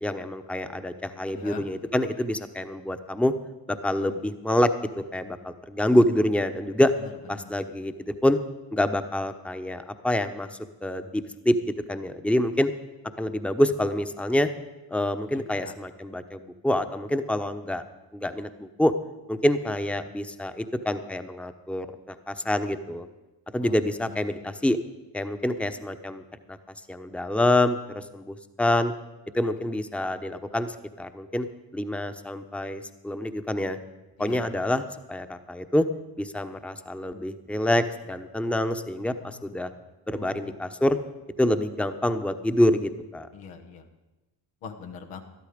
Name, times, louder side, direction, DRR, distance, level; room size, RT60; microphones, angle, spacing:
voice 1, 0.0-3.3 3.7-6.9 7.3-8.4 8.7-10.5 10.8-12.7 13.2-14.5 14.9-17.8 18.1-18.9 19.3-23.1 23.5-24.8 25.1-26.2 26.5-26.6 26.9-28.9 29.3-31.5 31.7-33.8 34.2-35.9 36.2-39.7 40.1-41.0 41.4-43.3, left 1 dB, ahead, 9 dB, 0.9 m, -26 dB
voice 2, 15.3-15.7 23.6-23.8 24.4-24.6 34.2-34.5 39.2-39.4 39.7-39.8 40.1-40.6 43.3-43.8 44.6-45.2, left 6 dB, 90° left, 3 dB, 1.3 m, -42 dB
12.5 x 12.0 x 5.1 m, 1.1 s
supercardioid pair, 45°, 49 cm